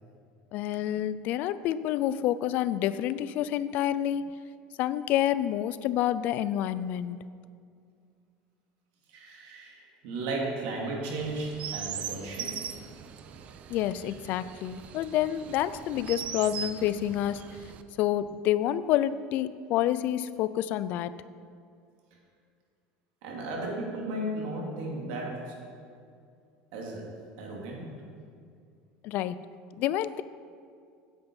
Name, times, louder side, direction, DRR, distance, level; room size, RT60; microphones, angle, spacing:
voice 1, 0.5-4.3 4.8-7.3 13.7-17.5 18.0-21.2 29.0-29.4 29.8-30.2, left 12 dB, 50° left, 16 dB, 0.4 m, -28 dB
voice 2, 9.1-12.6 13.2-13.7 23.2-25.5 26.7-27.1 27.4-27.9, right 2 dB, 70° right, -2 dB, 2.8 m, -35 dB
Chirp tweet, 11.2-17.8, right 8 dB, 35° right, 0.5 m, -40 dB
9.6 x 7.9 x 5.5 m, 2.3 s
cardioid pair, 150°, 4 cm